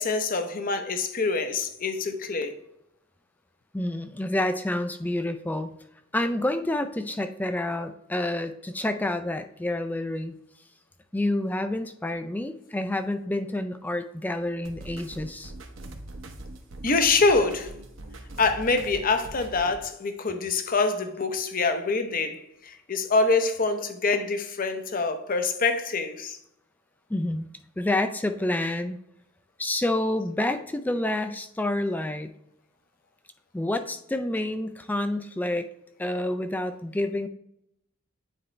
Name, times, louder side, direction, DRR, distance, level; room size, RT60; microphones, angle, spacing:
voice 1, 0.0-2.6 16.8-17.7 18.4-26.4, left 3 dB, 45° left, 0.7 m, -25 dB
voice 2, 3.7-5.7 6.1-10.4 11.1-15.5 27.1-27.5 27.8-29.0 29.6-32.3 33.5-35.7 36.0-37.3, left 1 dB, 10° left, 0.3 m, -28 dB
sound 1, 14.6-19.7, right 1 dB, 65° right, 0.9 m, -42 dB
9.1 x 4.3 x 3.2 m
head